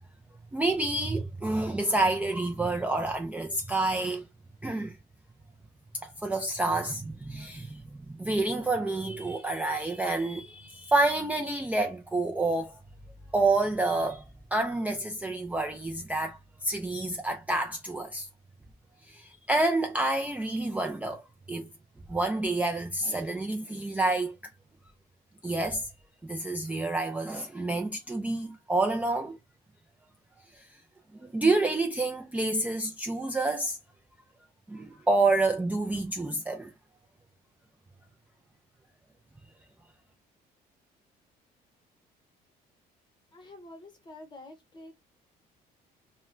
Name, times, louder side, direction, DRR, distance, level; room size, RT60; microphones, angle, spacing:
voice 1, 0.5-4.2 4.6-5.0 6.0-7.8 8.1-12.7 13.3-14.2 14.5-18.3 19.1-21.2 21.5-21.7 22.1-24.3 25.4-25.9 26.2-29.4 30.6-30.7 31.2-33.8 34.7-36.7, right 2 dB, 10° right, 0.4 m, -28 dB
voice 2, 43.3-44.9, left 2 dB, 25° left, 1.1 m, -48 dB
2.2 x 2.2 x 3.6 m
cardioid pair, 110°, 17 cm